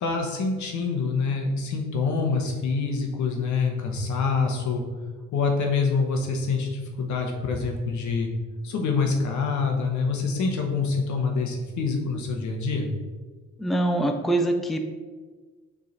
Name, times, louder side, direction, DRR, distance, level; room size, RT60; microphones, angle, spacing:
voice 1, 0.0-4.8 5.3-8.3 8.6-12.9, left 4 dB, 70° left, 2 dB, 1.2 m, -26 dB
voice 2, 13.6-14.8, right 1 dB, ahead, 4 dB, 0.5 m, -24 dB
6.5 x 3.8 x 4.1 m, 1.4 s
cardioid pair, 90°, 30 cm